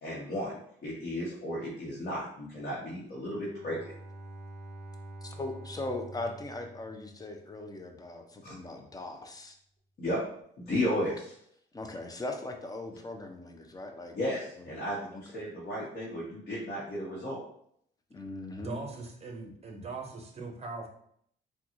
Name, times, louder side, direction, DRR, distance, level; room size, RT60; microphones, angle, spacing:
voice 1, 0.0-3.9 8.4-8.5 10.0-10.2 10.6-11.3 14.1-17.4, left 1 dB, 50° left, -7 dB, 1.0 m, -34 dB
Bowed string instrument, 3.3-7.6, right 1 dB, 5° right, 1.5 m, -47 dB
voice 2, 5.2-9.6 11.7-14.2 14.6-14.7 15.1-15.2 18.1-18.8, left 2 dB, 20° left, 4 dB, 0.5 m, -39 dB
voice 3, 18.6-20.9, right 3 dB, 30° right, 2 dB, 0.8 m, -40 dB
3.6 x 2.3 x 3.0 m, 0.68 s
cardioid pair, 90°, 20 cm